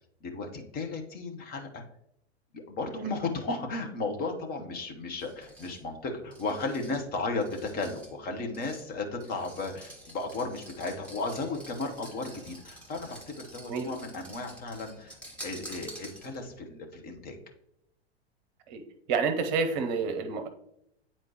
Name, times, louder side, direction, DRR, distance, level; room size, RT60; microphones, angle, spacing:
voice 1, 0.2-1.8 2.5-17.4, left 3 dB, 30° left, 4 dB, 1.0 m, -35 dB
sound 1, 5.2-16.6, right 1 dB, 5° left, 1.5 m, -49 dB
voice 2, 19.1-20.5, right 5 dB, 40° right, 7 dB, 0.9 m, -28 dB
9.5 x 4.4 x 2.9 m, 0.76 s
figure-of-eight pair, 90°, 33 cm